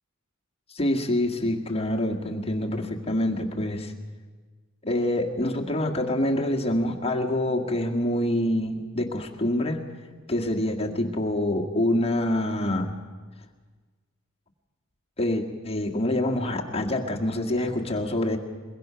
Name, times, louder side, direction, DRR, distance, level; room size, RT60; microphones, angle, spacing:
voice 1, 0.7-3.9 4.8-9.8 10.3-13.0 15.2-18.4, left 1 dB, 30° left, 0 dB, 1.8 m, -26 dB
22.5 x 22.0 x 5.8 m, 1.4 s
head